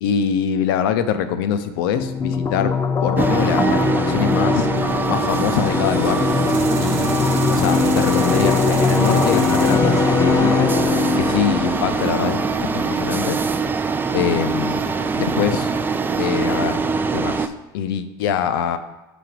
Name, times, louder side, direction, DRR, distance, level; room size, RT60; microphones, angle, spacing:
voice 1, 0.0-4.7 5.1-6.2 6.8-10.7 11.2-13.4 14.1-14.9 15.2-15.7 16.2-16.8 17.1-18.8, left 8 dB, 75° left, 10 dB, 0.7 m, -24 dB
sound 1, 2.0-13.0, left 5 dB, 25° left, 0.6 m, -21 dB
sound 2, 3.2-17.5, right 4 dB, 15° right, 0.4 m, -23 dB
sound 3, 4.8-12.9, right 2 dB, 60° right, 1.1 m, -33 dB
5.2 x 4.6 x 6.1 m, 1.1 s
hypercardioid pair, 95°, 12 cm